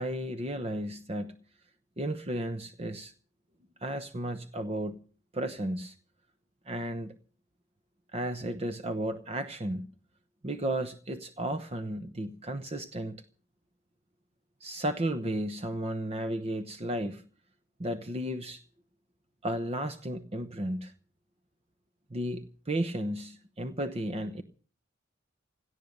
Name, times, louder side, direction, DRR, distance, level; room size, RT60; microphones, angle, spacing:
voice 1, 0.0-1.4 2.0-3.1 3.8-5.0 5.3-6.0 6.7-7.1 8.1-9.9 10.4-13.2 14.6-17.3 17.8-18.6 19.4-20.9 22.1-24.4, right 1 dB, 30° right, 0.9 m, -33 dB
17.5 x 12.0 x 6.6 m
head